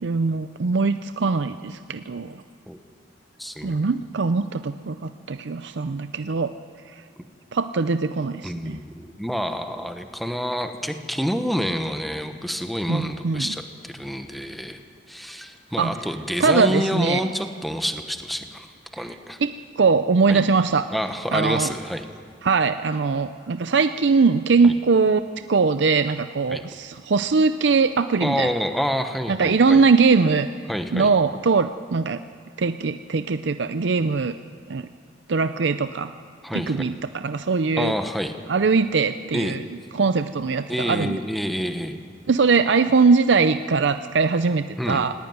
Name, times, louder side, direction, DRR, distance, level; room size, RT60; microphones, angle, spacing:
voice 1, 0.0-2.3 3.6-6.5 7.5-8.8 12.9-13.5 15.8-15.9 16.4-17.2 19.4-19.5 19.8-20.9 21.3-21.7 22.4-25.2 25.5-28.5 29.3-30.5 30.9-32.2 32.6-34.3 34.7-34.9 35.3-36.1 36.5-37.9 38.5-39.6 39.9-41.2 42.3-45.1, right 4 dB, 70° right, 10 dB, 0.5 m, -21 dB
voice 2, 3.4-3.9 8.4-14.8 15.1-18.7 18.9-19.4 20.3-20.4 20.9-22.0 24.6-24.7 26.5-26.6 28.2-29.8 30.7-31.1 36.4-36.9 37.8-38.3 39.3-39.6 40.7-42.0 44.8-45.0, equal, ahead, 6 dB, 1.0 m, -28 dB
18.0 x 17.5 x 9.5 m, 2.2 s
head